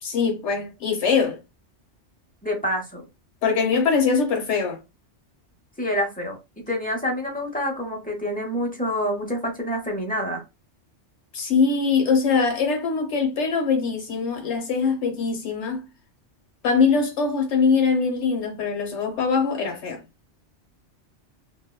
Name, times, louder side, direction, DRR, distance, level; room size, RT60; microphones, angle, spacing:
voice 1, 0.0-1.4 3.4-4.8 11.3-15.8 16.6-20.0, left 5 dB, 75° left, 0.9 m, -22 dB
voice 2, 2.4-3.0 5.8-10.4, equal, 10° left, 0.5 m, -27 dB
2.8 x 2.0 x 2.2 m
omnidirectional pair, 1.2 m